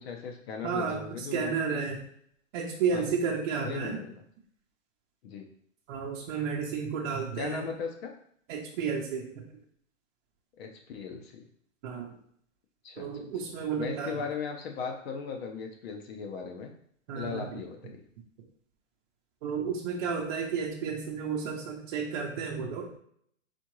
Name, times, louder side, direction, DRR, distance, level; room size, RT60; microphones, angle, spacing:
voice 1, 0.0-1.8 2.9-3.1 3.6-4.2 5.2-5.5 7.4-8.1 10.6-11.3 12.8-13.2 13.8-16.7 17.1-18.0, left 5 dB, 50° left, 3 dB, 1.0 m, -38 dB
voice 2, 0.6-2.0 2.5-4.0 5.9-7.7 8.5-9.4 11.8-12.1 13.0-14.2 17.1-17.6 19.4-22.9, right 6 dB, 40° right, -2 dB, 0.9 m, -32 dB
4.3 x 3.6 x 3.1 m, 0.64 s
hypercardioid pair, 135°, 40 cm